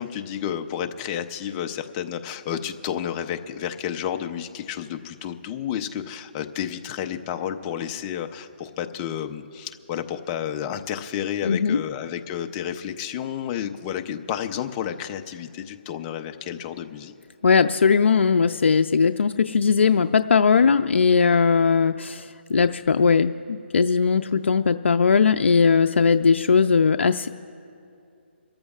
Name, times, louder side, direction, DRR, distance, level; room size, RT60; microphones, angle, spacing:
voice 1, 0.0-17.1, left 9 dB, 20° left, 7 dB, 0.6 m, -31 dB
voice 2, 11.4-11.8 17.4-27.3, left 5 dB, 80° left, 8 dB, 0.4 m, -19 dB
28.0 x 14.0 x 2.4 m, 2.5 s
hypercardioid pair, 160°, 6 cm